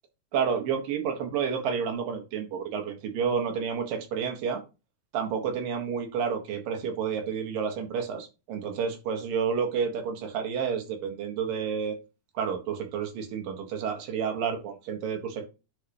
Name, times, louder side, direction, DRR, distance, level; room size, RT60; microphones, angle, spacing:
voice 1, 0.3-4.6 5.1-12.0 12.3-15.4, right 6 dB, 85° right, 4 dB, 3.3 m, -30 dB
10.5 x 5.2 x 3.0 m, 0.28 s
omnidirectional pair, 3.8 m